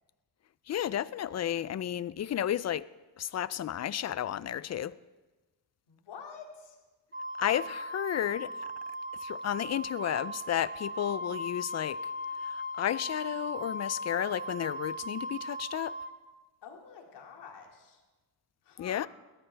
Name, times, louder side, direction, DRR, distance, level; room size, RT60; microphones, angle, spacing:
voice 1, 0.7-2.9 3.2-5.0 7.4-8.5 9.2-12.0 12.4-16.0 18.8-19.1, left 10 dB, 40° left, 0.4 m, -32 dB
voice 2, 5.9-6.8 16.6-18.0 18.6-19.1, left 6 dB, 85° left, 2.5 m, -48 dB
Wind instrument woodwind instrument, 7.1-16.1, left 1 dB, 30° right, 2.3 m, -38 dB
21.0 x 14.0 x 3.4 m
cardioid pair, 100°, 41 cm